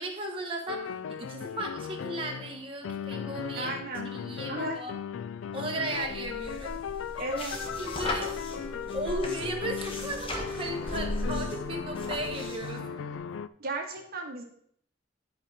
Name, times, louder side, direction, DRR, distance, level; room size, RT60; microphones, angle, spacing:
voice 1, 0.0-3.7 4.1-4.9 5.5-6.8 7.2-7.4 7.8-8.4 8.9-12.8, right 1 dB, 30° right, 0 dB, 1.2 m, -35 dB
sound 1, 0.7-13.5, left 7 dB, 85° left, 0.4 m, -37 dB
voice 2, 3.6-4.1 4.5-4.8 7.2-7.5 13.6-14.4, right 2 dB, 50° right, 2 dB, 1.2 m, -35 dB
sound 2, 6.0-12.8, left 1 dB, 30° left, 1.2 m, -38 dB
sound 3, 7.4-13.2, left 1 dB, ahead, 2.3 m, -43 dB
10.0 x 5.1 x 4.1 m, 0.66 s
head